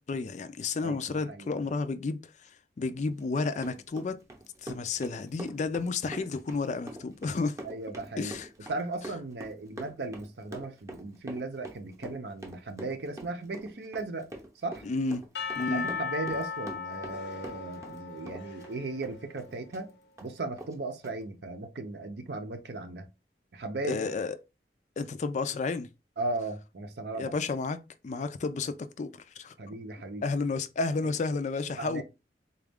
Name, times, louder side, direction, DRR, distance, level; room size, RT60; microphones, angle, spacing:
voice 1, 0.1-4.2 4.6-7.6 8.2-8.5 14.8-15.3 15.5-15.9 23.8-24.4 25.0-25.9 27.2-29.5 30.2-32.0, left 4 dB, 40° left, 0.4 m, -31 dB
Run, 3.2-18.0 18.3-19.9 20.2-20.3 20.6-20.7 21.0-21.1, right 1 dB, 20° right, 0.7 m, -44 dB
voice 2, 7.6-8.4 8.7-14.3 14.6-14.9 15.7-19.9 20.2-23.1 23.5-24.1 26.2-27.3 29.6-30.3 31.0-31.1 31.8-32.0, right 2 dB, 65° right, 0.7 m, -36 dB
Percussion / Church bell, 15.3-19.5, left 5 dB, 75° left, 0.7 m, -37 dB
3.9 x 2.4 x 3.4 m
head